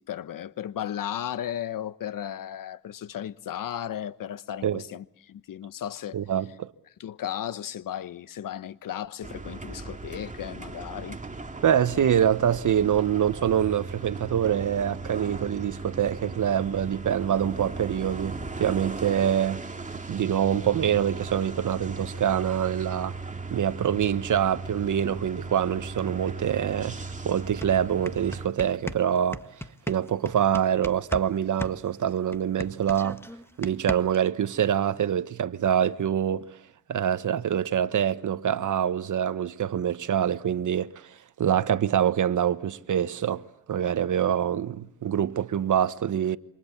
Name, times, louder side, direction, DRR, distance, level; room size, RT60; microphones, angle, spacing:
voice 1, 0.0-6.3 7.0-11.2, left 10 dB, 65° left, 1.1 m, -35 dB
voice 2, 6.1-6.7 11.6-19.6 20.1-23.2 23.5-27.0 27.2-29.4 29.9-33.2 33.6-36.5 36.9-41.0 41.4-43.4 43.7-46.4, right 9 dB, 60° right, 1.3 m, -25 dB
sound 1, 9.2-28.5, right 3 dB, 20° right, 2.5 m, -37 dB
sound 2, 27.1-27.2 27.4-31.3 31.6-34.3, left 1 dB, 5° left, 1.6 m, -37 dB
28.5 x 26.0 x 7.3 m
cardioid pair, 85°, 35 cm